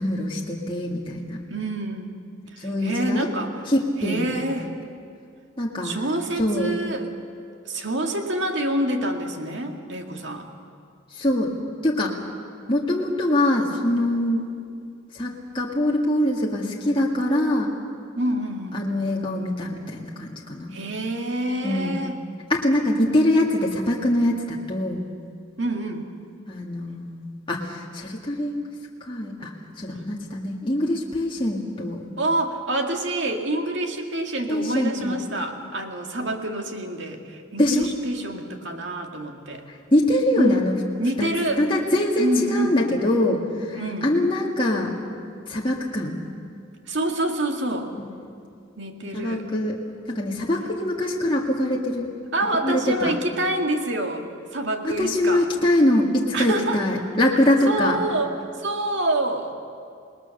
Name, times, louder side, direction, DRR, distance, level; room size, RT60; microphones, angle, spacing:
voice 1, 0.0-1.4 2.6-3.3 3.7-4.4 5.6-5.9 6.4-6.7 11.1-11.6 11.8-12.2 12.7-14.6 15.1-17.7 18.7-20.7 21.6-22.0 22.5-25.1 26.5-28.7 29.1-29.5 29.8-32.0 34.5-35.2 37.6-37.9 39.7-40.7 41.2-41.3 41.6-44.9 45.5-46.2 48.0-48.1 49.1-49.8 50.1-52.1 52.6-53.1 54.8-58.0, left 1 dB, 25° left, -2 dB, 1.8 m, -23 dB
voice 2, 1.5-2.1 2.5-3.6 4.0-4.7 5.8-7.1 7.7-10.5 18.2-18.8 20.7-22.2 25.6-26.0 32.2-39.6 40.4-40.6 41.0-41.7 42.2-42.7 43.7-44.1 46.9-47.9 48.8-49.4 52.3-54.2 54.5-55.5 56.3-56.8 57.7-58.3 58.6-59.5, right 1 dB, 60° right, 3 dB, 2.2 m, -27 dB
27.5 x 20.0 x 6.7 m, 2.3 s
head